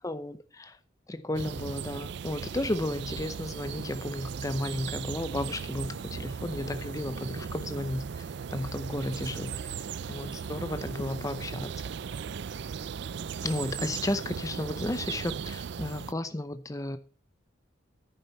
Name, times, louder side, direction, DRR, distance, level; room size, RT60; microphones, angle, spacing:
voice 1, 0.0-0.7 1.1-8.3 8.5-9.8 10.1-11.7 13.4-17.0, left 1 dB, 20° left, 0.6 m, -33 dB
sound 1, 1.3-16.1, right 6 dB, 65° right, 0.4 m, -37 dB
10.5 x 9.9 x 4.1 m
head